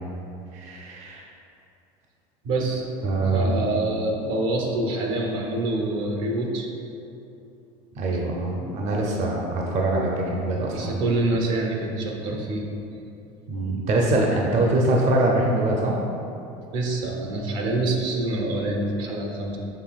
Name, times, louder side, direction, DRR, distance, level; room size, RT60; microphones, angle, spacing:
voice 1, 0.5-1.2 3.0-3.8 8.0-11.0 13.5-16.0, right 2 dB, 50° right, -1 dB, 0.6 m, -23 dB
voice 2, 2.4-2.9 3.2-6.7 8.6-8.7 10.7-12.7 16.7-19.6, right 2 dB, 80° right, 0 dB, 0.9 m, -26 dB
6.7 x 3.4 x 2.3 m, 2.7 s
supercardioid pair, 105°, 16 cm